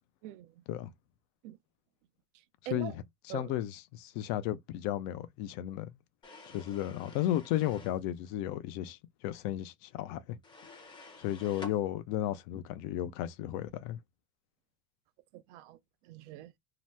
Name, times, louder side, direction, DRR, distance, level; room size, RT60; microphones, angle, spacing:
voice 1, 0.2-0.6 1.4-1.6 2.3-2.9 3.3-3.5 15.3-15.8 16.0-16.5, right 15 dB, 70° right, 0.6 m, -44 dB
voice 2, 3.3-5.9 6.5-10.4 11.2-14.0, left 13 dB, 55° left, 0.5 m, -34 dB
sound 1, 6.2-8.0 10.4-11.8, left 3 dB, 10° left, 0.7 m, -50 dB
2.9 x 2.0 x 3.2 m
supercardioid pair, 135°, 38 cm